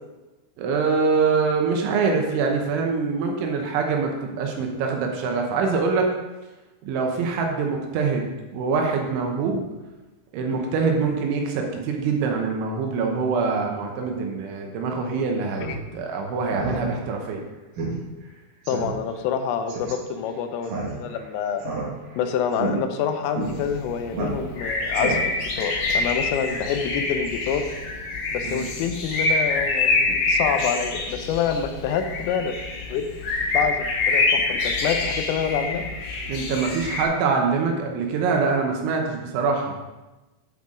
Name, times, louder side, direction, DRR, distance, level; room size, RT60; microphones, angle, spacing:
voice 1, 0.6-6.1 6.8-9.6 10.3-15.6 15.9-17.4 28.4-28.7 36.3-39.7, right 4 dB, 75° right, 2 dB, 3.1 m, -24 dB
Speech synthesizer, 15.5-15.8 16.1-16.2 16.5-16.8 17.2-17.3 17.8-17.9 18.2-18.3 18.7-18.9 19.7-19.9 20.6-21.2 21.6-22.2 22.5-22.7 23.3-23.5 24.1-24.6 24.9-25.5, right 3 dB, 55° right, 2.7 m, -30 dB
voice 2, 18.7-21.6 22.2-25.2 25.6-27.6 28.3-32.6 32.9-33.1 33.5-35.8, left 7 dB, 85° left, 7 dB, 3.3 m, -27 dB
sound 1, 23.4-37.0, left 3 dB, 60° left, 2.8 m, -26 dB
10.5 x 7.9 x 3.7 m, 1.1 s
omnidirectional pair, 5.9 m